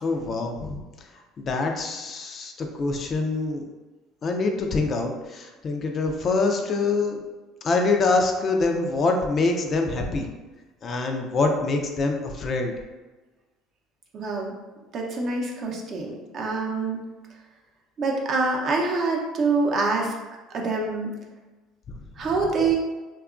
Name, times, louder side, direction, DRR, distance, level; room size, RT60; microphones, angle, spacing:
voice 1, 0.0-1.1 1.4-3.6 4.2-7.2 7.6-10.3 10.8-12.7, left 3 dB, 40° left, 3 dB, 0.4 m, -25 dB
voice 2, 14.1-14.6 14.9-17.0 18.0-20.1 20.5-21.1 22.2-22.8, right 3 dB, 45° right, 0 dB, 0.6 m, -25 dB
2.8 x 2.3 x 2.4 m, 1.2 s
supercardioid pair, 90°, 0 cm